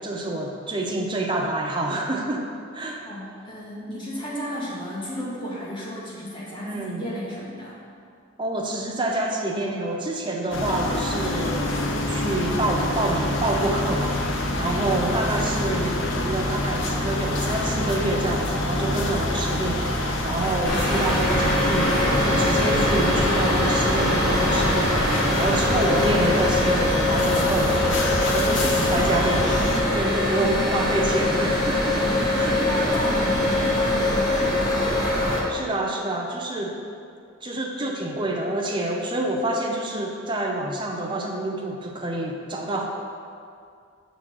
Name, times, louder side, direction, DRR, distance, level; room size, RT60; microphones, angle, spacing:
voice 1, 0.0-2.5 2.7-3.1 6.6-7.0 8.4-32.6 35.5-36.8 37.4-42.9, right 1 dB, 25° right, 1 dB, 0.6 m, -27 dB
voice 2, 3.0-7.8 30.5-30.7 32.1-34.8, equal, 25° left, -7 dB, 1.5 m, -33 dB
sound 1, 10.5-29.8, left 1 dB, 65° left, 0.7 m, -26 dB
sound 2, 20.7-35.4, left 1 dB, 45° left, 1.4 m, -23 dB
6.2 x 4.0 x 6.1 m, 2.3 s
head